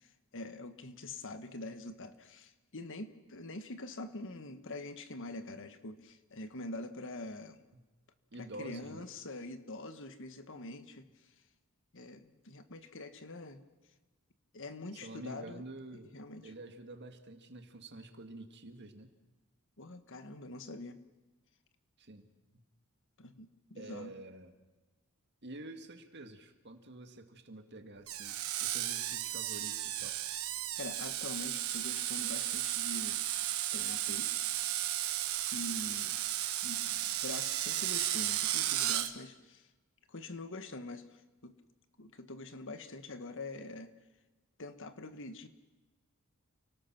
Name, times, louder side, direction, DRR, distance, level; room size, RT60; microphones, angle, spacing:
voice 1, 0.0-7.6 8.3-11.3 11.9-13.6 14.5-15.6 16.1-16.5 19.8-21.0 23.2-24.1 30.8-33.2 33.7-34.5 35.5-36.2 36.6-39.7 40.1-41.6 42.0-43.9 44.6-45.5, left 2 dB, 60° left, 10 dB, 1.5 m, -45 dB
voice 2, 8.3-9.1 14.9-19.1 22.0-22.6 23.8-24.6 25.4-30.2, right 2 dB, 50° right, 7 dB, 2.1 m, -48 dB
Screech, 28.1-39.1, right 13 dB, 75° right, 1.3 m, -34 dB
29.5 x 19.0 x 6.1 m, 1.2 s
head